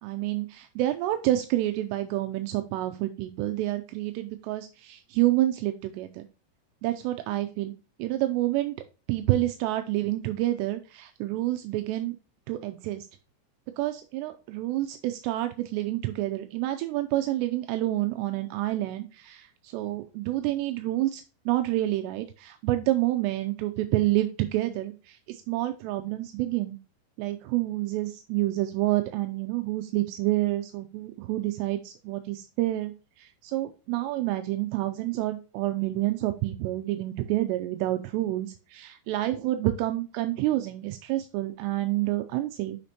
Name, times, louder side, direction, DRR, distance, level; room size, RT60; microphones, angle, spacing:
voice 1, 0.0-6.2 6.8-7.7 8.0-8.8 9.1-12.2 12.5-13.1 13.8-26.8 27.2-32.9 33.2-42.8, right 15 dB, 85° right, 8 dB, 2.7 m, -28 dB
8.4 x 5.1 x 2.8 m, 0.33 s
omnidirectional pair, 5.0 m